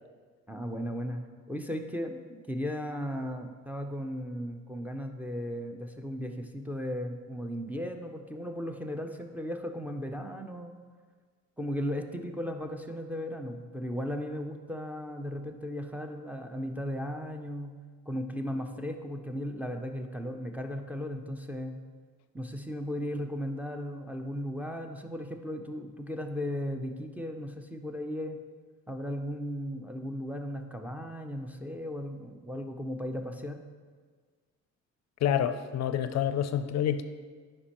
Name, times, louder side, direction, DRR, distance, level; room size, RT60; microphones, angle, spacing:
voice 1, 0.5-1.2 1.5-10.7 11.6-17.7 18.1-21.7 22.3-28.4 28.9-33.6, equal, 5° right, 3 dB, 0.5 m, -36 dB
voice 2, 35.2-37.0, left 9 dB, 60° left, 10 dB, 0.4 m, -28 dB
9.7 x 5.3 x 3.0 m, 1.5 s
cardioid pair, 90°, 30 cm